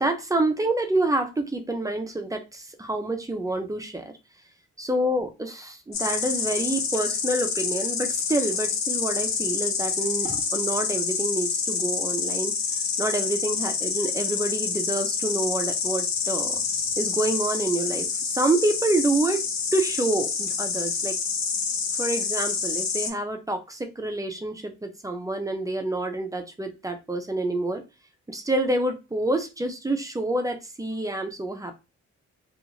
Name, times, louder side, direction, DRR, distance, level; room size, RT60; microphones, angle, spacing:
voice 1, 0.0-4.1 4.8-16.6 17.0-19.4 19.7-21.2 22.0-27.8 28.3-31.7, right 2 dB, 10° right, 0.4 m, -27 dB
Insect, 5.9-23.1, left 5 dB, 65° left, 0.7 m, -27 dB
2.4 x 2.4 x 3.0 m
wide cardioid pair, 130°, 29 cm